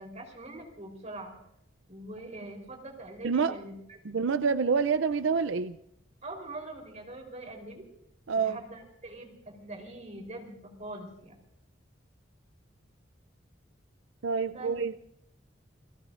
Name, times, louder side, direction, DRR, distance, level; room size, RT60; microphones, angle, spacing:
voice 1, 0.0-1.3 1.9-4.2 6.2-7.9 8.4-11.3 14.4-14.8, right 2 dB, 40° right, 2 dB, 4.0 m, -43 dB
voice 2, 4.0-5.8 8.3-8.6 14.2-15.1, right 5 dB, 85° right, 12 dB, 0.5 m, -27 dB
29.5 x 18.0 x 2.6 m, 0.75 s
head